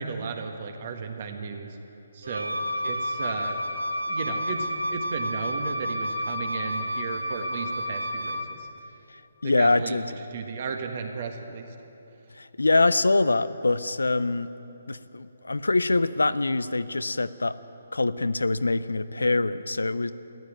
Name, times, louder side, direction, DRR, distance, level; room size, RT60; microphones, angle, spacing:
voice 1, 0.0-1.7 2.1-3.6 4.1-8.7 9.4-10.0 10.3-11.7, right 5 dB, 45° right, 5 dB, 1.5 m, -34 dB
Wind instrument woodwind instrument, 2.2-8.6, equal, 90° right, 0.9 m, -30 dB
voice 2, 9.1-10.2 12.3-14.5 14.9-17.5 17.9-20.1, left 3 dB, 80° left, 15 dB, 0.5 m, -24 dB
14.0 x 10.5 x 9.0 m, 3.0 s
figure-of-eight pair, 140°, 0 cm